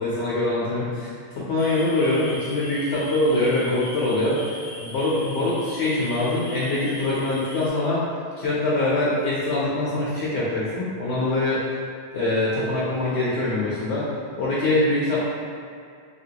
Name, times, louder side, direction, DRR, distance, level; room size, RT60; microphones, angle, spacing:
voice 1, 0.0-8.0 8.4-11.6 12.1-14.1 14.4-15.2, left 2 dB, 85° left, -8 dB, 0.9 m, -24 dB
sound 1, 1.6-7.7, left 1 dB, 60° left, 0.8 m, -40 dB
2.8 x 2.6 x 2.7 m, 2.2 s
omnidirectional pair, 1.1 m